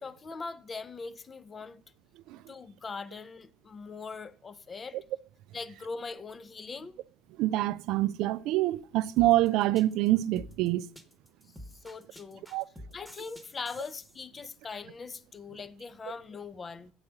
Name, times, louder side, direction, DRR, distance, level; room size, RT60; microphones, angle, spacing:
voice 1, 0.0-1.8 2.5-5.0 5.5-7.0 11.5-12.5 12.9-16.9, left 4 dB, 30° left, 0.5 m, -41 dB
voice 2, 7.4-10.9 12.5-12.6, right 16 dB, 70° right, 0.3 m, -26 dB
sound 1, 9.2-14.2, left 1 dB, 5° left, 1.1 m, -48 dB
7.4 x 4.8 x 6.1 m
supercardioid pair, 90°, 0 cm